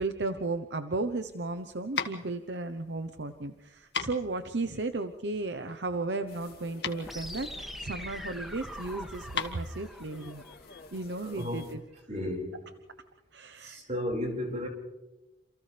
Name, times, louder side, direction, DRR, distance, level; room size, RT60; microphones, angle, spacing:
voice 1, 0.0-10.4 10.9-11.8 13.3-13.8, right 3 dB, 70° right, 8 dB, 0.9 m, -34 dB
sound 1, 1.0-10.9, left 6 dB, 80° left, 1.9 m, -39 dB
sound 2, 6.3-11.8, left 3 dB, 60° left, 3.3 m, -52 dB
sound 3, 7.0-11.0, equal, ahead, 2.1 m, -43 dB
voice 2, 11.2-11.7 12.1-12.6 13.6-14.7, left 1 dB, 40° right, 0 dB, 5.5 m, -34 dB
28.0 x 28.0 x 3.4 m, 1.1 s
head